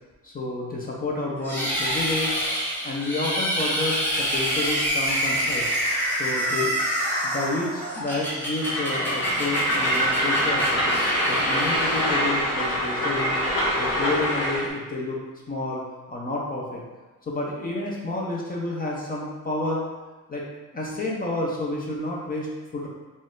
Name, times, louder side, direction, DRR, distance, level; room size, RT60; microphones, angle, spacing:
voice 1, 0.2-2.3 2.8-5.7 6.1-6.7 7.2-10.8 11.3-13.4 13.8-15.2 15.5-15.8 16.1-16.8 17.3-19.8 20.3-20.4 20.7-22.9, left 2 dB, 25° left, -3 dB, 0.6 m, -30 dB
sound 1, 1.4-12.8, equal, 5° left, 1.0 m, -27 dB
Train, 8.6-14.7, equal, 40° left, 1.1 m, -24 dB
4.2 x 2.5 x 3.7 m, 1.2 s
cardioid pair, 135°, 36 cm